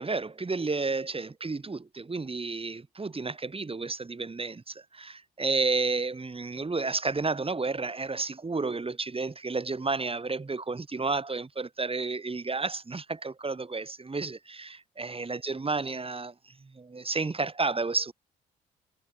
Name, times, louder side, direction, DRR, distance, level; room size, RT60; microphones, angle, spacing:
voice 1, 0.0-18.1, right 3 dB, 25° right, 5.3 m, -31 dB
hypercardioid pair, 55°, 21 cm